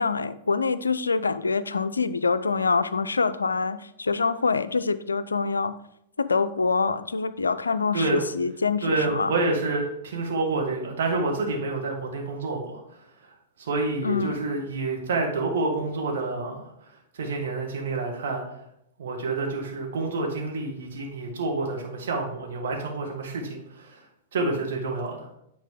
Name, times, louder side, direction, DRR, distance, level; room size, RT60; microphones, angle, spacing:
voice 1, 0.0-5.8 6.2-9.3 14.0-14.4, left 4 dB, 80° left, 14 dB, 0.3 m, -25 dB
voice 2, 8.8-12.8 13.6-16.7 17.1-18.4 19.0-24.0 24.3-25.3, right 3 dB, 60° right, 0 dB, 1.7 m, -28 dB
9.1 x 4.1 x 3.7 m, 0.78 s
figure-of-eight pair, 105°, 0 cm